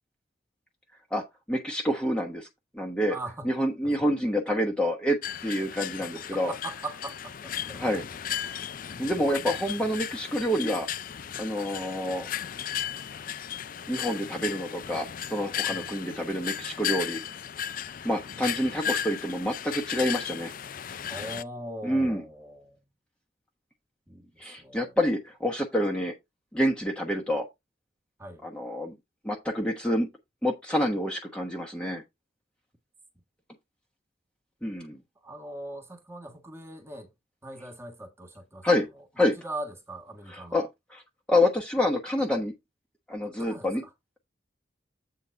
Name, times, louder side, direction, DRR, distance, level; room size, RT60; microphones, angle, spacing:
voice 1, 1.1-2.5 2.7-3.1 3.4-6.5 7.8-8.0 8.3-8.6 9.0-10.9 11.4-12.3 13.9-17.2 18.0-20.5 21.8-22.2 24.4-26.1 26.5-27.5 28.4-28.9 29.2-30.1 30.4-32.0 34.6-35.0 38.6-38.9 39.2-39.3 40.3-41.0 41.3-42.5 43.1-43.8, left 1 dB, 5° left, 1.0 m, -27 dB
voice 2, 3.1-3.6 3.8-4.0 6.0-7.8 8.9-9.5 15.7-15.9 21.1-22.9 24.1-25.0 28.2-28.4 35.2-37.1 37.4-38.7 38.9-40.6 43.2-43.9, right 1 dB, 15° right, 1.4 m, -41 dB
sound 1, 5.2-21.4, left 9 dB, 45° left, 0.4 m, -35 dB
8.2 x 3.8 x 5.6 m
head